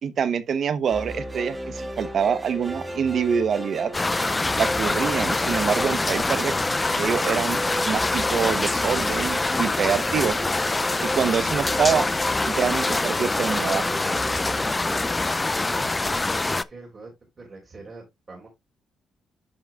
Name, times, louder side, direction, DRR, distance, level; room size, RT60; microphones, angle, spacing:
voice 1, 0.0-3.9 4.6-6.5 7.0-7.6 7.9-10.4 11.1-12.1 12.5-13.8, right 7 dB, 55° right, 0.9 m, -25 dB
sound 1, 0.9-16.1, right 1 dB, 15° right, 1.5 m, -35 dB
sound 2, 3.9-16.6, left 2 dB, 20° left, 0.4 m, -25 dB
voice 2, 15.6-17.1 17.4-18.5, right 3 dB, 35° right, 4.1 m, -43 dB
10.5 x 6.0 x 2.4 m
cardioid pair, 90°, 0 cm